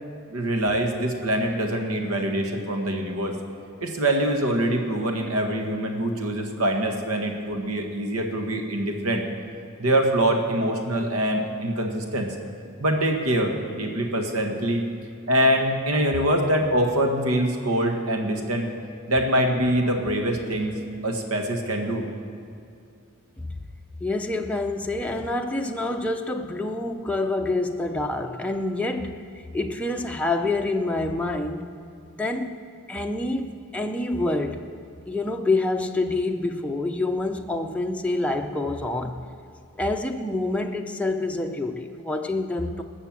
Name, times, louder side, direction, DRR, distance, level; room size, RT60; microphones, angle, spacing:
voice 1, 0.3-3.3 3.8-9.2 9.8-12.3 12.8-14.8 15.3-18.7 19.1-20.8 21.0-22.1, right 1 dB, 85° right, 4 dB, 1.7 m, -24 dB
voice 2, 24.0-29.1 29.5-31.7 32.2-32.6 32.9-34.7 35.1-39.2 39.8-42.8, left 2 dB, 5° left, 2 dB, 0.5 m, -27 dB
19.0 x 6.9 x 7.5 m, 2.5 s
head